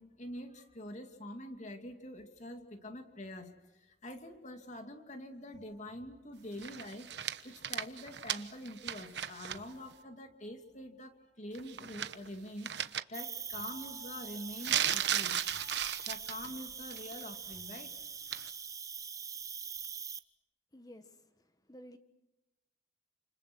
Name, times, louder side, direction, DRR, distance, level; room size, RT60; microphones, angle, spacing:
voice 1, 0.0-7.1 7.4-15.4 16.1-17.9, left 1 dB, 40° left, 5 dB, 2.7 m, -46 dB
sound 1, 5.5-6.7 9.5-11.2 13.5-17.1 17.5-18.5, equal, 65° left, 3.1 m, -62 dB
sound 2, 6.6-9.6 9.9-10.0 11.6-12.3 12.6-13.0 14.6-16.5 16.9-17.2 18.3-18.5, right 10 dB, 65° right, 1.1 m, -35 dB
Cricket, 13.1-20.2, right 6 dB, 20° right, 0.9 m, -43 dB
voice 2, 20.7-22.0, equal, 20° left, 9 dB, 1.7 m, -54 dB
29.5 x 28.0 x 6.3 m, 1.0 s
head